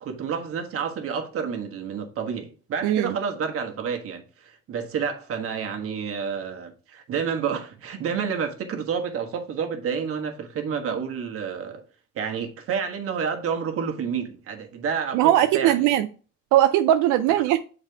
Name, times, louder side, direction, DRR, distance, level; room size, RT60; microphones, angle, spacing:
voice 1, 0.0-11.8 12.1-15.9, right 6 dB, 50° right, 1.3 m, -29 dB
voice 2, 2.8-3.2 15.1-16.1 16.5-17.6, right 12 dB, 85° right, 0.5 m, -19 dB
7.4 x 4.1 x 3.5 m
cardioid pair, 130°, 29 cm